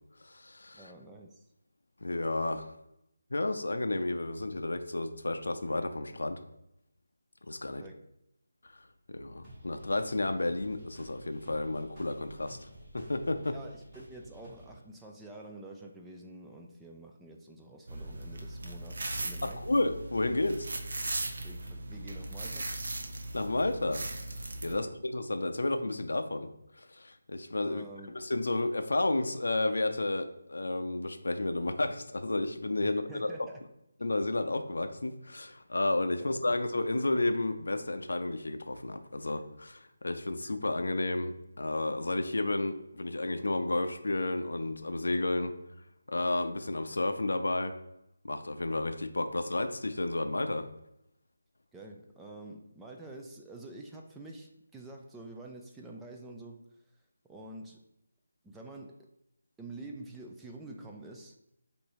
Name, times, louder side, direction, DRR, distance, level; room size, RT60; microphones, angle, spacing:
voice 1, 0.2-0.9 2.0-2.7 3.3-6.4 7.5-7.8 9.1-12.7 12.9-13.6 19.4-20.7 23.3-24.0 24.3-26.5 26.8-27.8 28.1-33.5 34.0-45.5 46.1-47.7 48.2-50.7, left 2 dB, 80° left, 8 dB, 0.5 m, -32 dB
voice 2, 0.7-1.5 7.8-8.0 13.5-19.7 21.4-22.8 24.7-24.9 27.6-28.1 32.8-33.7 51.7-56.8 57.3-57.9 58.4-59.1 59.6-61.4, right 2 dB, 5° right, 0 dB, 0.3 m, -48 dB
sound 1, 9.4-14.8, right 1 dB, 20° right, 1.7 m, -52 dB
sound 2, 17.9-24.7, right 2 dB, 60° right, 0.7 m, -38 dB
4.2 x 2.6 x 4.8 m, 0.83 s
figure-of-eight pair, 165°, 0 cm